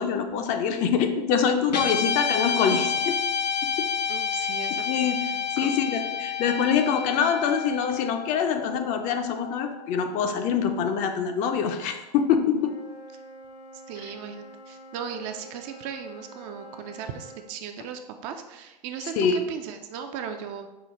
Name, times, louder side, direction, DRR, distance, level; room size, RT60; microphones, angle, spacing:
voice 1, 0.0-3.2 4.9-5.2 5.6-12.8 19.2-19.4, left 7 dB, 35° left, 6 dB, 0.4 m, -25 dB
Guitar, 1.7-10.2, left 7 dB, 90° left, 0.5 m, -30 dB
voice 2, 4.1-5.7 13.9-20.7, right 7 dB, 40° right, 6 dB, 0.4 m, -37 dB
Wind instrument woodwind instrument, 12.5-17.5, right 1 dB, 75° left, 1.2 m, -47 dB
5.5 x 2.1 x 3.0 m, 1.0 s
hypercardioid pair, 105°, 21 cm